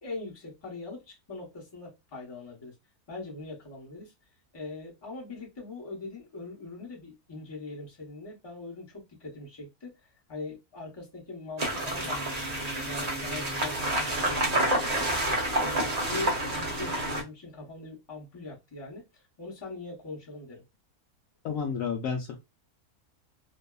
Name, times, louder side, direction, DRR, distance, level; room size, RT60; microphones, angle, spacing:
voice 1, 0.0-2.7 3.1-4.1 4.5-9.9 10.3-15.1 15.6-20.6, left 3 dB, 20° left, 0.8 m, -41 dB
sound 1, 11.6-17.2, right 1 dB, 40° right, 0.6 m, -29 dB
voice 2, 21.4-22.3, left 6 dB, 70° left, 0.9 m, -31 dB
2.6 x 2.4 x 2.3 m
omnidirectional pair, 1.7 m